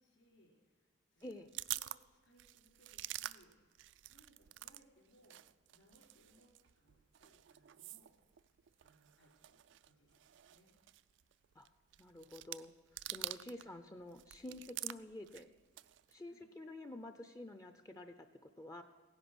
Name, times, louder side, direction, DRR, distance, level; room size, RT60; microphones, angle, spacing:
voice 1, 0.0-1.4 1.8-3.8 4.1-5.4 5.7-8.1 8.8-10.7 13.6-13.8 16.3-16.5, equal, 65° left, -1 dB, 4.5 m, -69 dB
sound 1, 1.2-4.8 5.1-13.7 14.0-16.1, right 16 dB, 60° right, 0.3 m, -48 dB
voice 2, 12.0-12.7 13.1-15.5 16.1-18.8, left 1 dB, 15° left, 9 dB, 0.5 m, -49 dB
16.5 x 10.5 x 6.2 m, 1.5 s
head